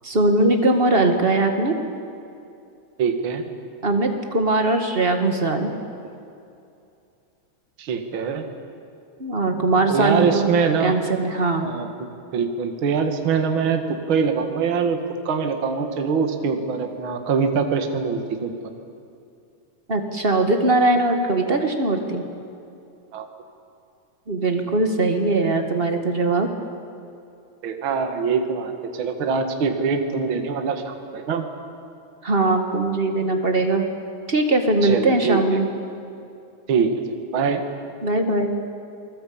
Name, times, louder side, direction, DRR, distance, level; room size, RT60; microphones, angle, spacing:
voice 1, 0.0-1.7 3.8-5.7 9.2-10.5 10.8-11.7 19.9-22.2 24.3-26.5 32.2-33.8 34.3-35.7 38.0-38.5, right 2 dB, 30° right, 5 dB, 1.1 m, -20 dB
voice 2, 3.0-3.4 7.8-8.4 9.9-11.0 11.6-11.9 12.3-15.0 15.3-18.5 23.1-23.3 27.6-31.4 34.8-35.4 36.7-36.9 37.3-37.6, right 5 dB, 45° right, 5 dB, 2.2 m, -23 dB
28.0 x 20.5 x 8.7 m, 2.6 s
omnidirectional pair, 3.8 m